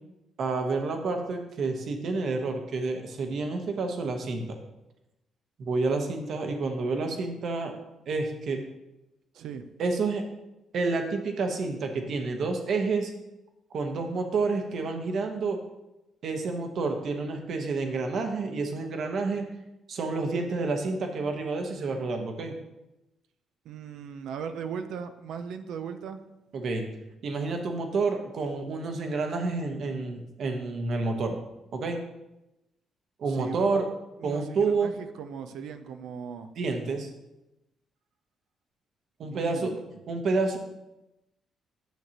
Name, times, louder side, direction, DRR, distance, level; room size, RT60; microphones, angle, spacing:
voice 1, 0.4-4.6 5.6-7.7 8.1-8.6 9.8-10.3 10.7-13.1 13.7-15.6 16.2-19.5 19.9-22.5 26.5-26.9 27.2-31.4 31.7-32.0 33.2-33.9 34.2-34.9 36.6-37.1 39.2-40.6, right 3 dB, 65° right, 4 dB, 1.1 m, -29 dB
voice 2, 23.6-26.2 33.3-33.9 34.2-36.5 39.2-40.0, right 7 dB, 80° right, 8 dB, 0.5 m, -38 dB
9.2 x 6.6 x 2.9 m, 0.93 s
cardioid pair, 90°, 0 cm